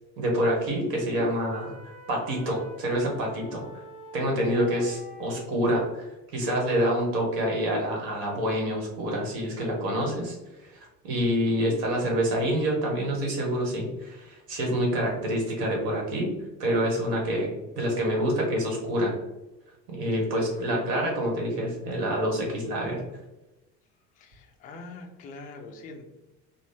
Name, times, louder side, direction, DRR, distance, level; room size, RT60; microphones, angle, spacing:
voice 1, 0.2-1.8 2.1-3.7 4.1-10.3 10.7-16.3 16.6-17.5 17.8-19.1 19.9-23.0, equal, 55° right, 0 dB, 1.3 m, -27 dB
sound 1, 1.5-5.5, equal, 30° right, 1.0 m, -46 dB
voice 2, 24.2-26.1, left 3 dB, 20° left, 3 dB, 0.4 m, -44 dB
3.8 x 2.1 x 3.3 m, 1.0 s
figure-of-eight pair, 65°, 49 cm